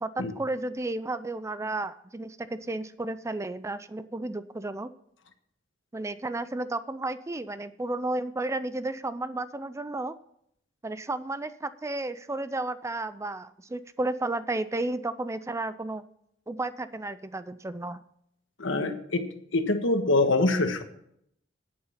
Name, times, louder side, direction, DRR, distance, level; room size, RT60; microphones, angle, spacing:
voice 1, 0.0-4.9 5.9-10.2 10.8-16.0 16.5-18.0, right 2 dB, 15° right, 13 dB, 0.4 m, -33 dB
voice 2, 18.6-19.2 19.5-20.8, left 2 dB, 70° left, 7 dB, 1.5 m, -24 dB
11.0 x 8.7 x 5.6 m, 0.71 s
head